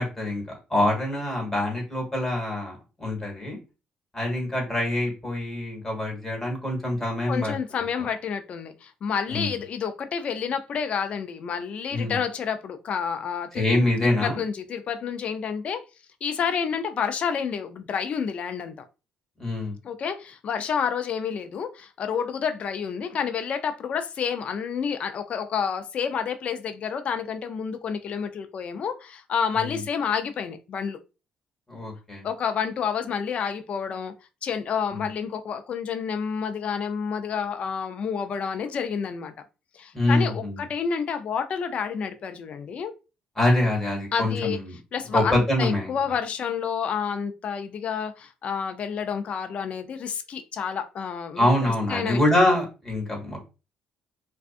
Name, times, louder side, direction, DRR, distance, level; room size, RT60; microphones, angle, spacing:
voice 1, 0.0-3.6 4.1-7.6 9.3-9.6 11.9-12.2 13.5-14.4 19.4-19.7 29.5-29.8 31.7-32.2 34.9-35.1 39.9-40.6 43.4-44.7 45.1-46.0 51.4-53.4, left 1 dB, 15° left, 1.3 m, -25 dB
voice 2, 7.3-13.6 14.0-15.8 16.2-18.7 19.8-31.0 32.2-34.1 34.4-39.3 39.7-42.9 44.1-44.6 44.9-51.5 51.9-52.2, left 7 dB, 50° left, 0.4 m, -29 dB
2.5 x 2.3 x 2.4 m
cardioid pair, 105°, 3 cm